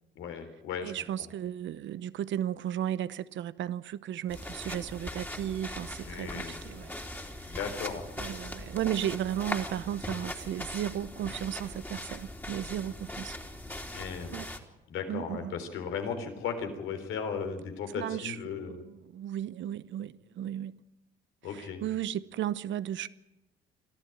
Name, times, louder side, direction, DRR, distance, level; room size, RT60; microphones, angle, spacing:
voice 1, 0.2-0.9 1.2-1.3 6.0-6.5 7.5-8.3 13.9-14.4 14.9-18.8 21.4-21.8, left 6 dB, 75° left, 3.8 m, -36 dB
voice 2, 0.8-6.9 7.4-7.6 8.2-13.4 14.3-14.5 15.1-15.5 17.9-18.4 18.7-20.8 21.5-23.1, right 11 dB, 65° right, 1.0 m, -35 dB
sound 1, 4.3-14.6, left 1 dB, 10° left, 3.2 m, -40 dB
24.0 x 14.0 x 9.1 m
supercardioid pair, 75°, 20 cm